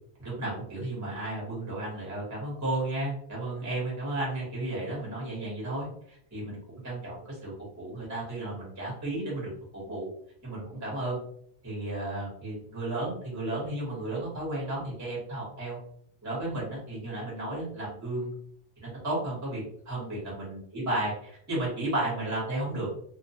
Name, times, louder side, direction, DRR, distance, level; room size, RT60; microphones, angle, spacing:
voice 1, 0.2-6.6 6.8-10.1 10.4-11.2 11.6-15.8 16.2-18.3 19.0-22.9, right 2 dB, 15° right, -5 dB, 0.8 m, -33 dB
2.3 x 2.2 x 2.7 m, 0.66 s
omnidirectional pair, 1.3 m